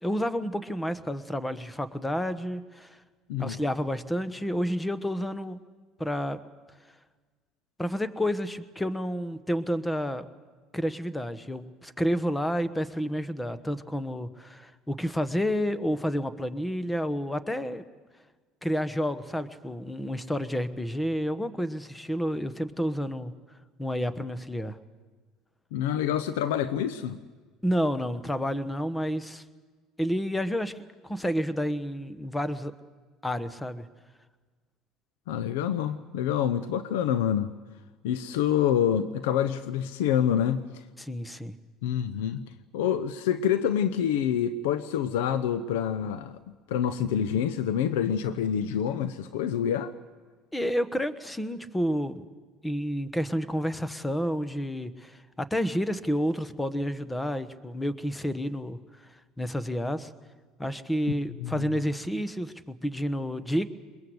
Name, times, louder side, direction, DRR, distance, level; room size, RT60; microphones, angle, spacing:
voice 1, 0.0-3.0 3.4-5.6 6.0-6.4 7.8-10.2 10.7-17.8 18.6-23.3 23.8-24.8 27.6-29.4 30.0-30.7 31.0-32.7 33.2-33.9 41.0-41.5 50.5-52.2 52.6-58.8 59.4-60.1 60.6-63.7, equal, 10° left, 12 dB, 1.2 m, -30 dB
voice 2, 25.7-27.2 35.3-37.5 38.0-40.8 41.8-46.4 46.7-49.9 61.4-61.7, left 9 dB, 90° left, 12 dB, 0.8 m, -27 dB
22.0 x 21.5 x 8.0 m, 1.4 s
supercardioid pair, 100°, 0 cm